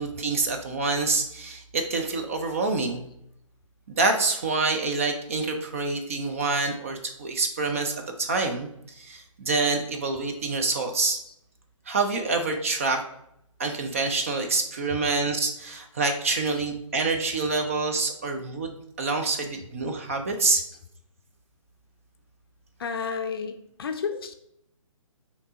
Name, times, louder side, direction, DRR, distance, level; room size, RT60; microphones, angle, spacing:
voice 1, 0.0-3.0 3.9-11.2 11.9-13.0 13.6-20.6, right 3 dB, 25° right, 5 dB, 0.3 m, -27 dB
voice 2, 22.8-24.3, left 6 dB, 45° left, 7 dB, 0.5 m, -31 dB
6.4 x 2.8 x 2.7 m, 0.76 s
figure-of-eight pair, 140°, 17 cm